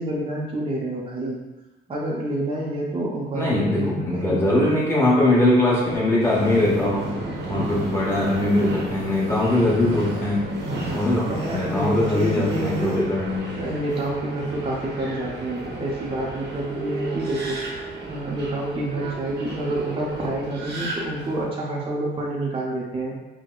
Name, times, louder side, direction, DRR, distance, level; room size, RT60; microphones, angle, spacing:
voice 1, 0.0-1.4 1.9-4.4 11.3-12.9 13.5-23.2, right 1 dB, 25° right, -3 dB, 0.6 m, -28 dB
voice 2, 3.3-7.2 7.5-10.6 10.9-13.6, left 1 dB, 10° left, -6 dB, 1.1 m, -21 dB
Subway metro underground, 6.2-21.5, right 2 dB, 60° right, 0.9 m, -33 dB
4.4 x 2.1 x 2.3 m, 1.1 s
cardioid pair, 90°, 20 cm